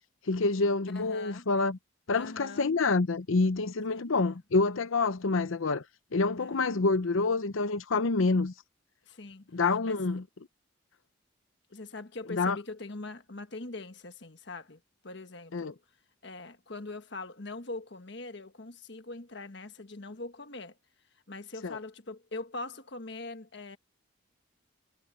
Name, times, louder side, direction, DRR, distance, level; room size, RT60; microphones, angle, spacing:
voice 1, 0.3-1.8 2.1-5.8 6.1-8.5 9.5-10.2 12.3-12.6 15.5-15.7 21.6-21.8, left 3 dB, 75° left, 0.7 m, -27 dB
voice 2, 0.9-1.5 2.1-2.7 3.9-4.4 6.4-6.6 9.1-9.5 9.8-10.0 11.7-15.8 16.2-20.8 21.3-23.8, left 2 dB, 55° left, 1.5 m, -42 dB
head